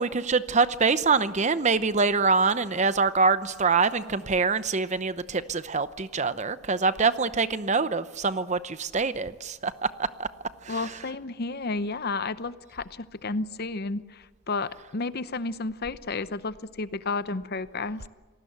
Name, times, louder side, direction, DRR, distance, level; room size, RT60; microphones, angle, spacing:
voice 1, 0.0-10.3 10.7-10.8, right 4 dB, 35° right, 13 dB, 0.8 m, -25 dB
voice 2, 10.7-18.0, left 3 dB, 45° left, 14 dB, 0.8 m, -32 dB
27.5 x 19.5 x 8.1 m, 1.3 s
head